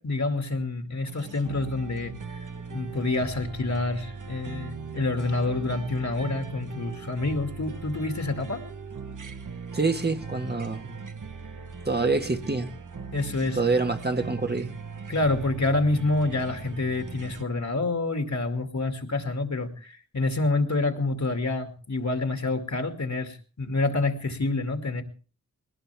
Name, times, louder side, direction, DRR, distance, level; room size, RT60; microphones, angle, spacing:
voice 1, 0.0-2.4 2.7-8.6 13.1-13.6 15.1-25.0, left 2 dB, 65° left, 6 dB, 2.4 m, -27 dB
sound 1, 1.1-17.4, right 5 dB, 85° right, 1.1 m, -39 dB
voice 2, 9.7-11.0 11.8-12.7 13.5-14.7, right 3 dB, 35° right, 6 dB, 1.4 m, -26 dB
20.5 x 18.5 x 3.5 m, 0.38 s
wide cardioid pair, 70°, 30 cm